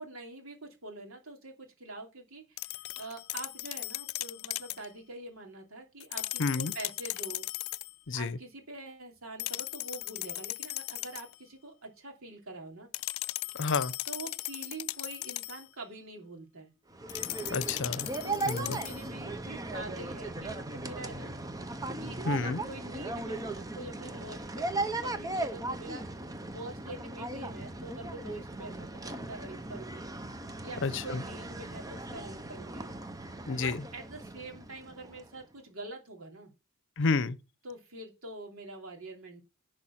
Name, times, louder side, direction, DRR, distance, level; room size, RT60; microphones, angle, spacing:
voice 1, 0.0-7.4 8.1-12.9 14.0-16.7 18.2-21.3 22.0-26.2 26.5-30.1 30.6-32.9 33.5-36.5 37.6-39.4, right 2 dB, 80° right, 2.9 m, -45 dB
sound 1, 2.6-4.9 6.0-7.9 9.4-11.3 12.9-15.7 17.1-19.1, left 18 dB, 90° left, 0.4 m, -37 dB
voice 2, 6.4-6.7 8.1-8.4 13.6-13.9 17.5-18.1 18.5-18.8 22.2-22.6 30.8-31.2 33.5-33.8 37.0-37.4, left 4 dB, 60° left, 0.7 m, -30 dB
sound 2, 16.9-35.4, right 2 dB, 15° right, 0.8 m, -38 dB
11.0 x 4.8 x 5.7 m
head